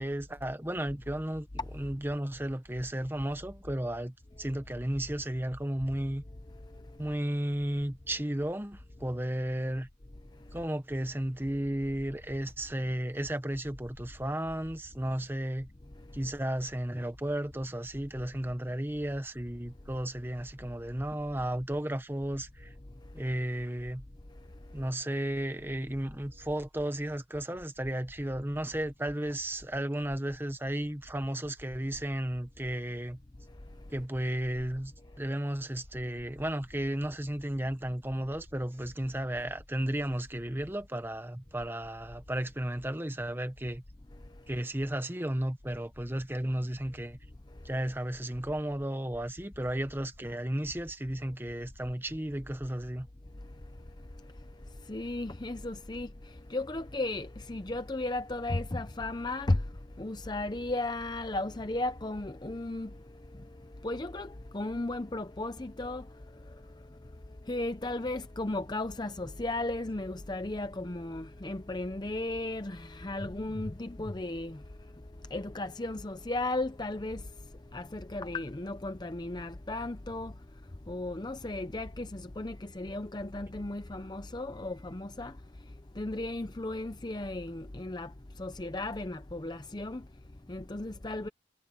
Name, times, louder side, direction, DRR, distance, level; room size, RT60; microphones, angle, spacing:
voice 1, 0.0-1.5 1.7-6.2 7.0-9.9 10.5-15.7 16.1-22.7 23.1-24.0 24.7-33.2 33.9-43.8 44.5-47.2 47.6-53.1, right 1 dB, 10° right, 1.0 m, -34 dB
voice 2, 54.9-56.1 56.5-59.6 60.0-62.9 63.8-66.1 67.5-74.6 75.3-77.2 77.7-80.3 80.9-85.3 86.0-88.1 88.4-90.0 90.5-91.3, left 2 dB, 20° left, 0.6 m, -35 dB
head